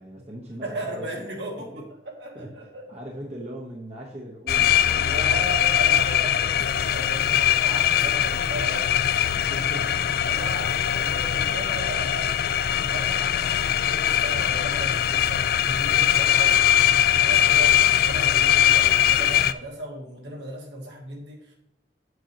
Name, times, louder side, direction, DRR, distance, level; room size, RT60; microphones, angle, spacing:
voice 1, 0.0-1.1 1.5-1.8 2.3-2.5 2.9-5.7 7.1-7.2 8.0-8.1 9.3-10.3, equal, 35° right, -3 dB, 1.1 m, -40 dB
voice 2, 0.6-2.9 5.0-8.9 10.2-12.3 12.7-16.6 17.1-17.8 18.0-21.5, right 1 dB, 70° right, -1 dB, 2.1 m, -36 dB
sound 1, 4.5-19.5, left 10 dB, 55° left, 0.3 m, -21 dB
8.5 x 8.0 x 3.0 m, 0.82 s
head